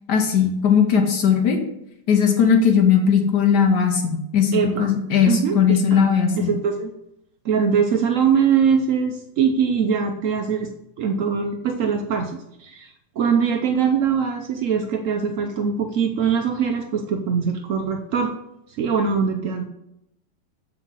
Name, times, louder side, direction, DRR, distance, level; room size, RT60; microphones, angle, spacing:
voice 1, 0.1-1.6 2.1-6.5, left 7 dB, 65° left, 4 dB, 1.4 m, -18 dB
voice 2, 4.5-4.9 5.2-6.0 6.4-6.9 7.4-10.7 11.0-18.3 18.8-19.6, right 6 dB, 85° right, 3 dB, 0.7 m, -22 dB
7.1 x 4.6 x 3.9 m, 0.82 s
omnidirectional pair, 2.0 m